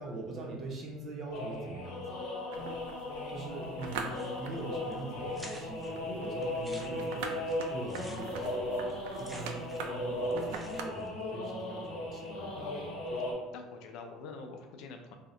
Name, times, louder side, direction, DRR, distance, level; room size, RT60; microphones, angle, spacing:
voice 1, 0.0-2.0 3.3-8.9 9.2-13.0, right 2 dB, 40° right, 0 dB, 0.7 m, -42 dB
sound 1, 1.3-13.3, left 1 dB, 85° left, 0.9 m, -37 dB
sound 2, 2.5-10.8, right 5 dB, 85° right, 0.3 m, -44 dB
sound 3, 4.1-4.6 4.9-5.0 5.3-5.9 6.4-10.0 10.2-11.1, equal, 5° right, 0.5 m, -51 dB
voice 2, 13.5-15.2, left 4 dB, 70° left, 5 dB, 0.4 m, -46 dB
2.8 x 2.0 x 3.7 m, 1.2 s
supercardioid pair, 110°, 0 cm